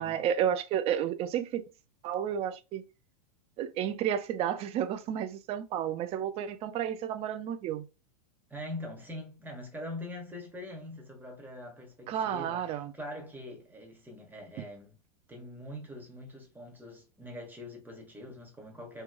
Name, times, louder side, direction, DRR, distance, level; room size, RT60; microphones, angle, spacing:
voice 1, 0.0-1.6 2.0-2.8 3.6-7.8 12.1-12.9, right 9 dB, 30° right, 0.4 m, -31 dB
voice 2, 8.5-15.0 15.3-19.0, left 1 dB, 10° right, 1.0 m, -43 dB
3.0 x 2.2 x 2.2 m
hypercardioid pair, 110°, 20 cm